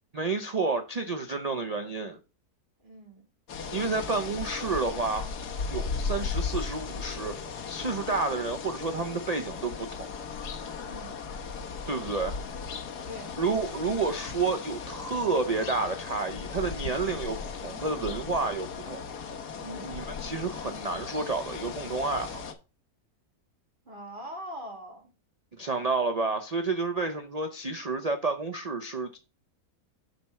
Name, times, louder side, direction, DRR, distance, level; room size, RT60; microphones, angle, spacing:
voice 1, 0.1-2.2 3.7-5.3 5.7-7.3 7.7-10.1 11.9-12.4 13.4-19.0 19.8-22.5 25.5-29.2, right 3 dB, 55° right, 0.4 m, -30 dB
voice 2, 2.8-3.2 10.8-11.1 13.1-13.3 19.6-19.9 23.9-25.1, equal, 30° right, 2.1 m, -42 dB
sound 1, 3.5-22.5, left 5 dB, 80° left, 1.6 m, -37 dB
6.6 x 4.2 x 5.7 m
omnidirectional pair, 1.7 m